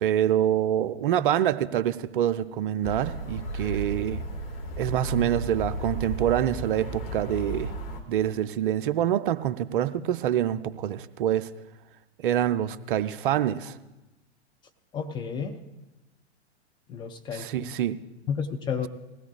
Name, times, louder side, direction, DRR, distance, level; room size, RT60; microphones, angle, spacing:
voice 1, 0.0-4.2 4.8-7.7 8.1-11.5 12.2-13.8 17.3-18.0, right 11 dB, 50° right, 12 dB, 0.6 m, -26 dB
sound 1, 2.8-8.0, right 1 dB, 60° left, 1.9 m, -34 dB
voice 2, 14.9-15.6 16.9-17.7 18.3-18.9, left 6 dB, 15° left, 4 dB, 0.4 m, -31 dB
20.0 x 16.0 x 2.4 m, 1.0 s
figure-of-eight pair, 105°, 34 cm